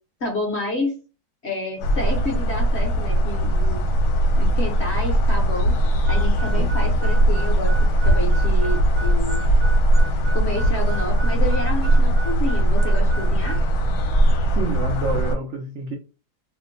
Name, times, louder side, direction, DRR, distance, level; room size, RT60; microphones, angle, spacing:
voice 1, 0.2-1.0 1.4-3.9 4.4-5.8 6.1-9.5 10.3-13.6, left 1 dB, 50° left, 0.8 m, -29 dB
sound 1, 1.8-15.4, right 1 dB, 70° left, 1.1 m, -19 dB
sound 2, 1.8-9.3, right 1 dB, 10° right, 0.6 m, -43 dB
Harmonica, 6.1-13.7, right 3 dB, 55° right, 0.9 m, -36 dB
voice 2, 6.5-7.0 14.4-16.0, right 3 dB, 75° right, 0.6 m, -29 dB
2.8 x 2.1 x 3.8 m
omnidirectional pair, 1.8 m